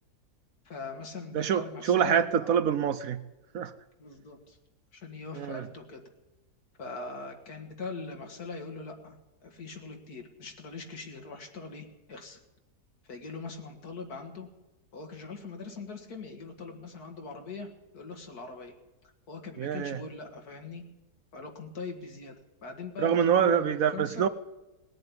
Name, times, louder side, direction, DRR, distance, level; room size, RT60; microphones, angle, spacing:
voice 1, 0.6-2.5 4.0-4.6 4.9-6.0 6.8-12.4 13.1-14.5 14.9-18.7 19.3-20.9 21.3-22.4 22.6-24.3, left 4 dB, 70° left, 4 dB, 2.3 m, -41 dB
voice 2, 1.3-3.2 3.5-3.7 5.3-5.7 19.6-20.0 23.0-24.3, right 8 dB, 65° right, 12 dB, 1.1 m, -26 dB
19.5 x 7.7 x 9.4 m, 1.0 s
omnidirectional pair, 1.7 m